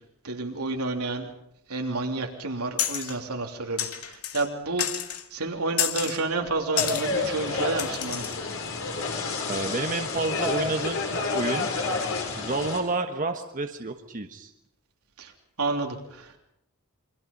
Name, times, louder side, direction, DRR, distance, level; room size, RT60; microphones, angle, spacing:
voice 1, 0.2-1.3 1.7-4.9 5.3-8.3 15.2-15.3 15.6-16.4, right 3 dB, 85° right, 2 dB, 3.3 m, -30 dB
sound 1, 2.8-3.2 3.8-4.5 4.8-5.2 5.8-6.2 6.8-7.1 7.8-8.4, left 10 dB, 85° left, 1.9 m, -29 dB
sound 2, 6.7-12.8, left 3 dB, 65° left, 4.9 m, -29 dB
voice 2, 9.5-11.7 12.4-14.5, right 3 dB, 35° right, 5 dB, 1.3 m, -30 dB
28.0 x 23.5 x 5.4 m, 0.78 s
head